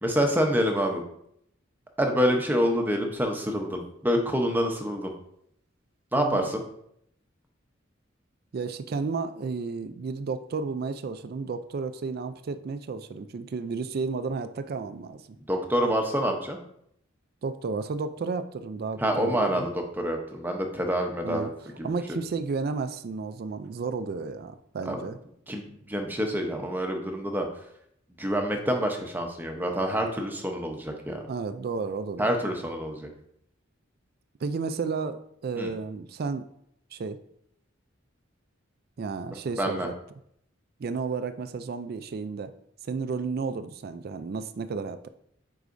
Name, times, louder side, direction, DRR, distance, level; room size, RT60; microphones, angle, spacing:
voice 1, 0.0-1.0 2.0-5.1 6.1-6.6 15.5-16.6 19.0-21.5 21.8-21.9 24.9-25.0 25.5-27.5 28.2-31.2 32.2-33.1 35.6-35.7 39.6-39.9, equal, 10° right, 3 dB, 0.7 m, -27 dB
voice 2, 6.2-6.5 8.5-15.2 17.4-19.7 21.2-21.5 21.8-25.2 31.3-32.5 34.4-36.5 36.9-37.2 39.0-39.9 40.8-42.5 42.8-45.1, right 4 dB, 50° right, 11 dB, 0.4 m, -32 dB
8.1 x 4.6 x 2.6 m, 0.72 s
head